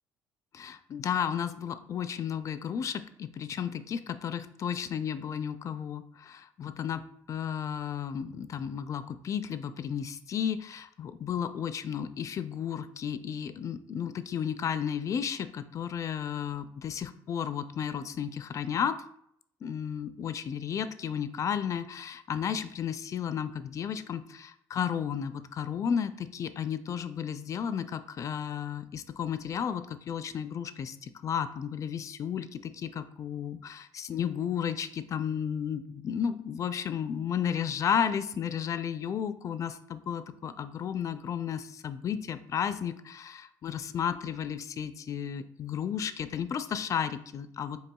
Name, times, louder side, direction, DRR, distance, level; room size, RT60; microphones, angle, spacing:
voice 1, 0.5-19.0 19.6-47.8, left 8 dB, 40° left, 11 dB, 0.4 m, -33 dB
7.7 x 2.7 x 2.3 m, 0.71 s
cardioid pair, 105°, 8 cm